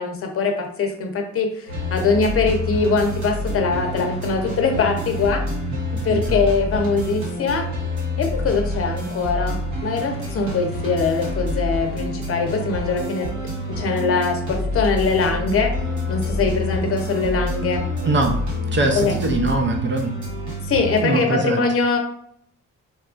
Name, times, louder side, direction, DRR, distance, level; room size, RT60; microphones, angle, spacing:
voice 1, 0.0-5.4 6.0-7.7 8.2-13.3 13.7-15.7 16.1-17.9 18.9-19.1 20.6-22.0, left 4 dB, 40° left, 3 dB, 0.7 m, -22 dB
sound 1, 1.7-21.0, left 1 dB, 60° right, 1.1 m, -27 dB
voice 2, 5.9-6.4 18.0-18.4 18.7-20.2 21.0-21.7, right 2 dB, 35° right, 4 dB, 0.5 m, -22 dB
4.2 x 2.3 x 2.4 m, 0.66 s
cardioid pair, 105°, 33 cm